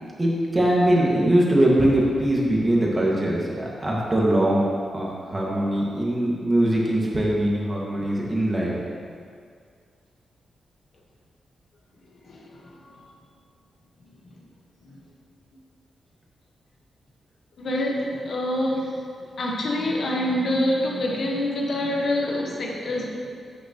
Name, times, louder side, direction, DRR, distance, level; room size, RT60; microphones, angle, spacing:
voice 1, 0.2-4.6 4.9-8.8, right 1 dB, 20° right, -4 dB, 1.9 m, -22 dB
voice 2, 12.2-12.6 12.9-13.1 14.9-15.0 17.6-19.1 19.4-23.4, left 1 dB, 60° left, -1 dB, 1.4 m, -26 dB
10.0 x 9.1 x 3.1 m, 2.2 s
cardioid pair, 110°, 0 cm